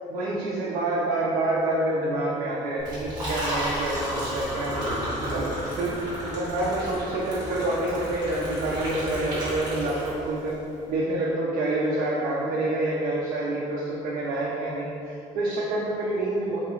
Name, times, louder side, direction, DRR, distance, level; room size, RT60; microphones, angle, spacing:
voice 1, 0.1-5.5 5.8-10.5 10.9-16.6, right 2 dB, 75° right, -6 dB, 0.6 m, -27 dB
Liquid, 2.8-10.5, equal, 30° right, 1.4 m, -32 dB
3.9 x 3.0 x 3.8 m, 2.8 s
cardioid pair, 175°, 14 cm